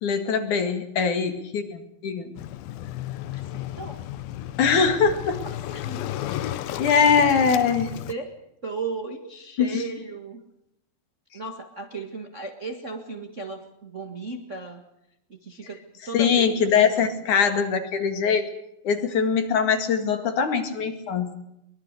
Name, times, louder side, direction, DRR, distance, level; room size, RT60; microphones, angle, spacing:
voice 1, 0.0-2.3 4.6-5.4 6.8-7.9 9.6-9.8 16.1-18.5 18.8-21.3, left 6 dB, 60° left, 7 dB, 3.5 m, -22 dB
Waves surf, 2.4-8.1, left 13 dB, 90° left, 2.8 m, -33 dB
voice 2, 3.3-4.0 5.4-6.1 7.6-7.8 8.1-8.3 8.6-10.4 11.3-14.8 15.3-16.9, right 4 dB, 30° right, 5 dB, 1.4 m, -36 dB
24.0 x 21.5 x 6.6 m, 0.82 s
omnidirectional pair, 4.0 m